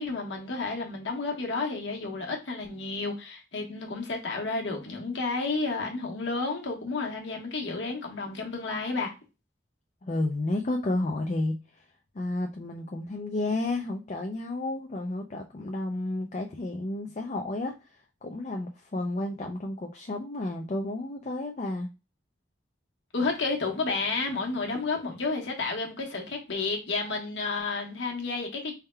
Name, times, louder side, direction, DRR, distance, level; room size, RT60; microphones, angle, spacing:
voice 1, 0.0-9.1 23.1-28.7, left 3 dB, 75° left, 1.1 m, -31 dB
voice 2, 10.0-11.9 12.1-21.9, left 2 dB, 40° left, 0.4 m, -32 dB
3.5 x 2.2 x 4.3 m
head